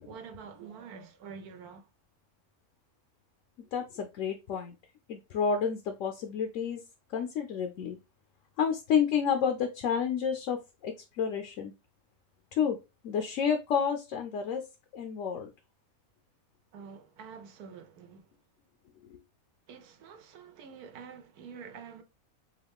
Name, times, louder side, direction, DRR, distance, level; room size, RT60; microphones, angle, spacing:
voice 1, 0.0-1.9 16.7-18.3 19.7-22.0, right 6 dB, 85° right, 1.2 m, -47 dB
voice 2, 3.7-4.8 5.1-6.8 7.1-8.0 8.6-10.6 10.8-11.7 12.5-12.8 13.0-14.6 14.9-15.5 19.0-19.2, left 7 dB, 65° left, 0.9 m, -30 dB
4.7 x 2.6 x 3.4 m
omnidirectional pair, 1.6 m